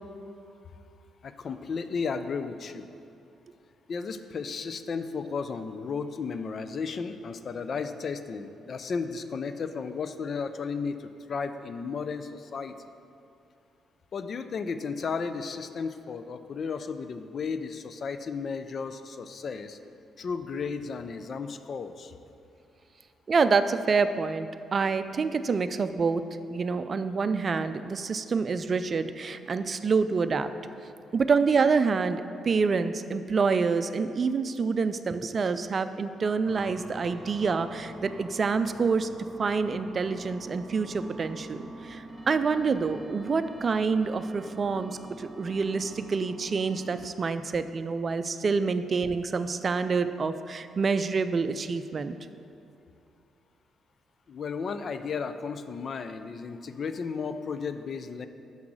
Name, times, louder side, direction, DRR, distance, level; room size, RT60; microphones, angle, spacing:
voice 1, 1.2-2.9 3.9-12.8 14.1-19.8 20.2-22.1 54.3-58.3, left 5 dB, 55° left, 10 dB, 0.5 m, -34 dB
voice 2, 23.3-26.2 26.5-30.5 31.1-39.1 39.4-52.1, right 5 dB, 45° right, 11 dB, 0.4 m, -27 dB
sound 1, 36.5-47.1, right 1 dB, ahead, 1.1 m, -45 dB
7.2 x 5.9 x 6.3 m, 2.5 s
hypercardioid pair, 45°, 0 cm